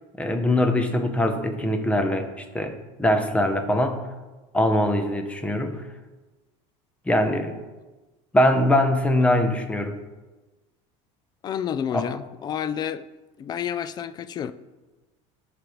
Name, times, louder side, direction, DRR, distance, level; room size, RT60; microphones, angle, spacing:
voice 1, 0.2-4.0 4.5-5.8 7.1-7.6 8.3-10.0 11.9-12.1, left 1 dB, 10° left, 0.7 m, -22 dB
voice 2, 11.4-13.0 13.4-14.5, left 9 dB, 30° left, 0.3 m, -29 dB
13.5 x 5.0 x 3.1 m
cardioid pair, 145°, 15 cm